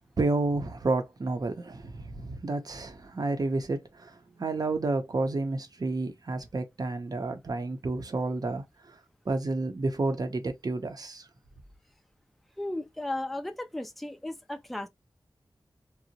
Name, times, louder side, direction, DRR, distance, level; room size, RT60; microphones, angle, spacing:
voice 1, 0.2-9.0 9.3-11.3, right 2 dB, 50° right, 0.6 m, -30 dB
voice 2, 12.6-14.9, left 1 dB, ahead, 0.3 m, -35 dB
2.7 x 2.0 x 2.6 m
wide cardioid pair, 85°, 8 cm